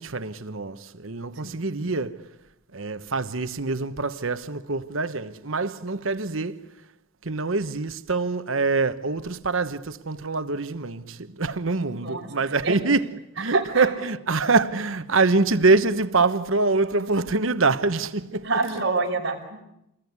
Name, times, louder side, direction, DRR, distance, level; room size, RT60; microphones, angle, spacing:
voice 1, 0.0-2.3 2.7-6.6 7.2-13.1 13.4-18.5, right 3 dB, 70° right, 1.1 m, -25 dB
voice 2, 11.9-12.3 12.6-12.8 13.5-13.9 18.4-19.6, right 3 dB, 55° right, 5.5 m, -27 dB
29.0 x 21.5 x 9.6 m
head